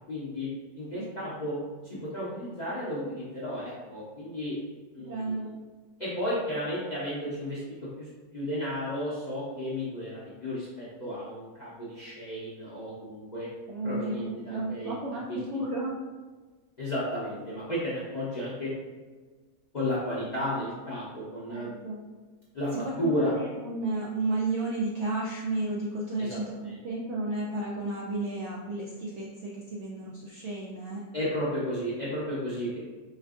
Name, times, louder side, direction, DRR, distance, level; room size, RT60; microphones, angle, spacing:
voice 1, 0.1-0.5 0.8-1.6 1.8-4.6 4.9-5.5 6.0-8.1 8.3-13.5 13.8-14.9 15.3-15.6 16.8-18.7 19.7-21.7 22.5-22.7 23.0-23.3 26.2-26.8 31.1-32.8, equal, 45° left, -9 dB, 0.5 m, -33 dB
voice 2, 5.0-5.5 13.7-15.9 21.5-22.0 22.7-31.0, right 2 dB, 70° right, -4 dB, 0.7 m, -33 dB
4.3 x 2.5 x 2.4 m, 1.4 s
omnidirectional pair, 1.7 m